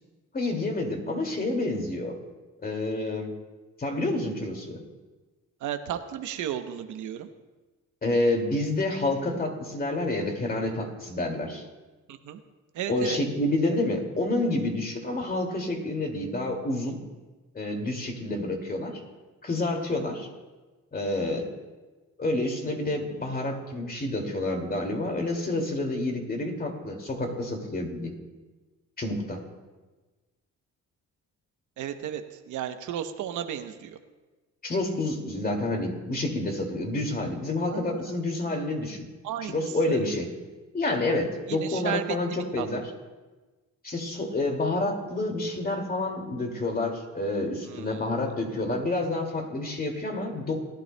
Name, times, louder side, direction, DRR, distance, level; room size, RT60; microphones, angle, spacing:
voice 1, 0.3-2.2 2.6-3.3 3.8-4.8 8.0-11.6 12.9-17.0 17.5-19.0 19.4-20.3 20.9-21.5 22.2-28.1 29.0-29.4 34.6-39.1 39.5-40.3 40.7-42.8 43.8-50.6, left 2 dB, 30° left, 2 dB, 2.3 m, -28 dB
voice 2, 5.6-7.3 12.1-12.4 12.7-13.2 31.8-33.9 37.7-38.1 39.2-40.0 41.5-42.7 47.6-48.1, right 10 dB, 75° right, 8 dB, 0.8 m, -34 dB
19.5 x 11.5 x 2.2 m, 1.2 s
cardioid pair, 90°, 30 cm